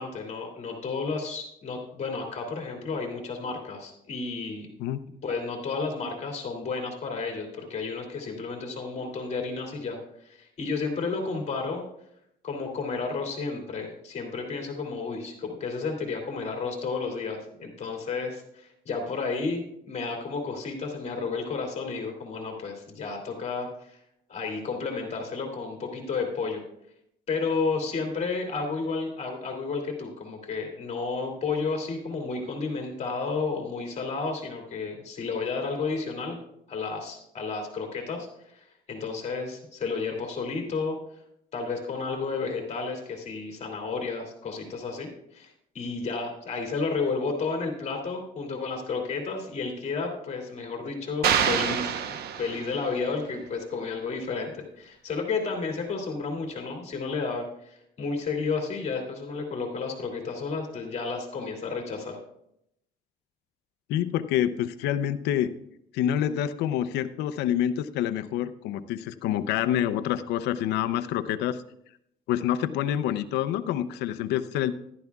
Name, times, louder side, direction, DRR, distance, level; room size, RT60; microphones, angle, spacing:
voice 1, 0.0-4.7 5.2-10.0 10.2-11.8 12.4-24.0 24.3-26.6 27.3-36.4 36.7-38.3 38.5-41.0 41.5-45.5 45.7-62.2, left 4 dB, 40° left, 1 dB, 2.6 m, -32 dB
sound 1, 51.2-53.0, right 8 dB, 70° right, 0.9 m, -26 dB
voice 2, 63.9-65.5 65.9-71.6 72.3-74.7, left 11 dB, 85° left, 13 dB, 0.6 m, -27 dB
14.5 x 12.0 x 2.4 m, 0.77 s
cardioid pair, 110°, 17 cm